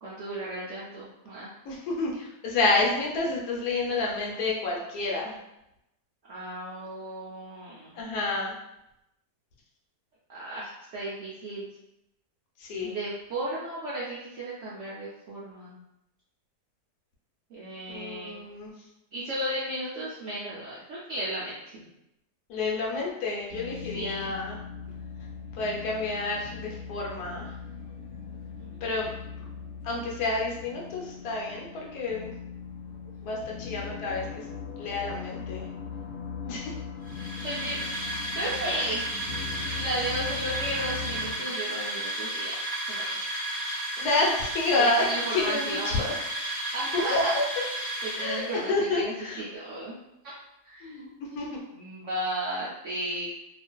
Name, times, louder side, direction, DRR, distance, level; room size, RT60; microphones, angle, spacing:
voice 1, 0.0-1.5 6.3-8.0 10.3-11.7 12.8-15.8 17.5-18.3 19.1-21.9 23.9-24.3 37.4-38.0 38.3-39.1 39.7-42.5 42.9-43.3 44.8-46.0 46.7-47.4 48.0-49.1 49.5-49.9 50.2-50.3 50.6-50.9 51.7-53.3, right 1 dB, 70° right, -8 dB, 0.7 m, -34 dB
voice 2, 1.6-5.4 7.9-8.5 12.6-12.9 17.9-18.7 22.5-24.6 25.5-27.5 28.8-29.1 29.8-32.3 33.2-34.4 34.8-35.7 36.5-36.7 38.6-38.9 44.0-46.6 46.9-47.2 48.1-49.4 49.8-49.9 50.8-51.5, left 3 dB, 75° left, -2 dB, 1.1 m, -29 dB
sound 1, 23.5-41.3, left 6 dB, 50° left, 0.9 m, -40 dB
sound 2, 37.0-48.9, right 1 dB, 5° left, 0.7 m, -33 dB
2.5 x 2.4 x 2.2 m, 0.86 s
omnidirectional pair, 1.8 m